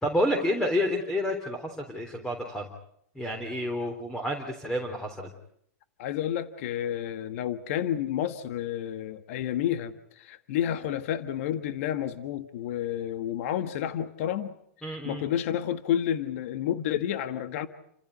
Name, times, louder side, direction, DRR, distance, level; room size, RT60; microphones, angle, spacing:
voice 1, 0.0-2.7 3.2-5.3 14.8-15.2, left 1 dB, 5° left, 5 dB, 3.5 m, -29 dB
voice 2, 6.0-14.5 14.9-17.7, left 10 dB, 55° left, 10 dB, 1.6 m, -30 dB
29.5 x 15.5 x 9.5 m, 0.73 s
hypercardioid pair, 135°, 9 cm